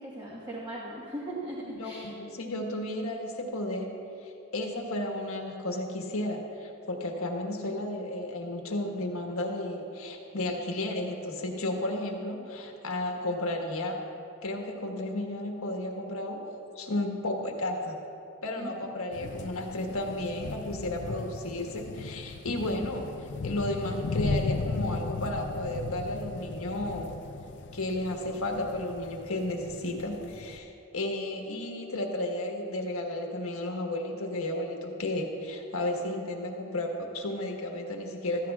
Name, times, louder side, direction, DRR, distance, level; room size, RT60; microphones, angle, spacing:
voice 1, 0.0-2.1 18.5-19.3, right 1 dB, 20° right, -6 dB, 1.4 m, -39 dB
voice 2, 1.7-3.9 4.2-14.0 14.4-18.0 18.4-23.1 23.4-27.2 27.7-38.5, left 1 dB, 85° left, 1 dB, 1.4 m, -33 dB
sound 1, 19.1-30.6, left 3 dB, 55° left, 0.4 m, -36 dB
15.0 x 14.0 x 2.4 m, 2.8 s
head